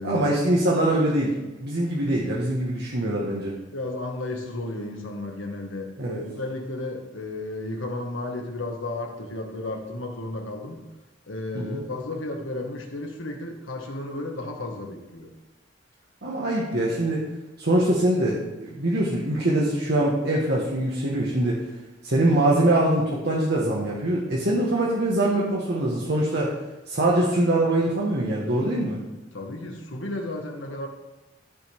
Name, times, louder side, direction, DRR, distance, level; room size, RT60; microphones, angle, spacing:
voice 1, 0.0-3.5 6.0-6.2 11.5-11.8 16.2-17.2 17.6-21.6 22.0-26.5 26.9-29.0, right 1 dB, 60° right, -4 dB, 1.5 m, -23 dB
voice 2, 3.7-10.9 11.3-15.3 29.3-30.9, left 2 dB, 80° left, 2 dB, 1.7 m, -33 dB
14.0 x 5.9 x 3.5 m, 1.1 s
head